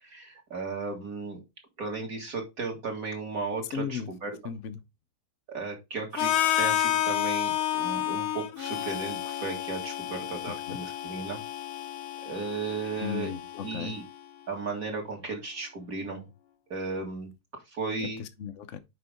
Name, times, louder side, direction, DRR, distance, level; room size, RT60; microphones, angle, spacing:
voice 1, 0.0-1.4 1.8-4.4 5.5-11.4 12.2-13.3 13.6-14.0 14.5-16.3 16.7-18.2, right 4 dB, 45° right, 2.2 m, -35 dB
voice 2, 3.7-4.1 4.4-4.8 10.7-10.8 13.0-14.0 18.0-18.8, left 8 dB, 65° left, 0.7 m, -36 dB
Harmonica, 6.2-14.1, left 12 dB, 85° left, 1.6 m, -30 dB
6.7 x 5.2 x 3.5 m
omnidirectional pair, 2.2 m